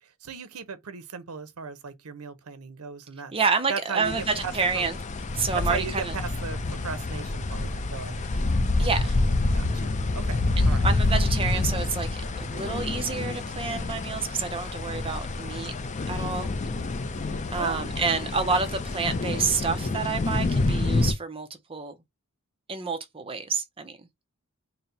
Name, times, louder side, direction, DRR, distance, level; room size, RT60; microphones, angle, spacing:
voice 1, 0.0-3.3 3.7-4.9 5.7-8.4 9.5-9.9 10.1-10.9 17.5-17.8, right 5 dB, 75° right, 0.7 m, -37 dB
voice 2, 3.3-5.0 5.3-6.1 8.8-9.2 10.6-15.7 16.1-16.5 17.5-21.9 22.7-24.0, right 5 dB, 25° right, 0.6 m, -29 dB
sound 1, 4.0-21.1, left 2 dB, 35° left, 0.5 m, -27 dB
4.0 x 2.1 x 4.0 m
head